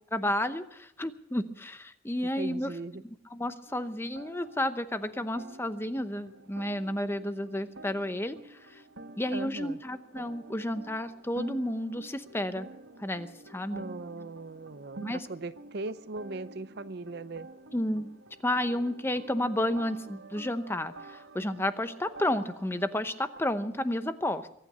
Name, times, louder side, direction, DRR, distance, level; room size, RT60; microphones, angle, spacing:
voice 1, 0.1-2.7 3.3-8.8 9.2-12.7 13.0-13.9 15.0-15.3 17.7-18.1 18.4-24.5, left 1 dB, 10° left, 11 dB, 0.7 m, -31 dB
voice 2, 2.3-3.0 9.3-9.8 13.7-17.5, right 3 dB, 55° right, 14 dB, 0.6 m, -39 dB
sound 1, 3.7-23.4, right 2 dB, 85° right, 1.7 m, -48 dB
23.0 x 9.1 x 6.7 m, 0.79 s
head